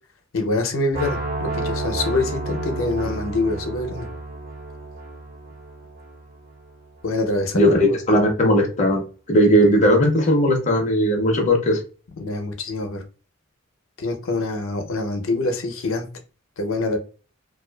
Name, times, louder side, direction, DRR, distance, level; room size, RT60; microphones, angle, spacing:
voice 1, 0.3-4.1 7.0-8.0 12.2-13.0 14.0-16.1 16.6-17.0, left 2 dB, 75° left, 5 dB, 0.6 m, -25 dB
sound 1, 0.9-6.9, right 2 dB, 45° right, 0.5 m, -31 dB
voice 2, 7.5-9.0 9.3-11.8, equal, 35° left, 1 dB, 0.5 m, -17 dB
2.4 x 2.3 x 2.2 m, 0.35 s
head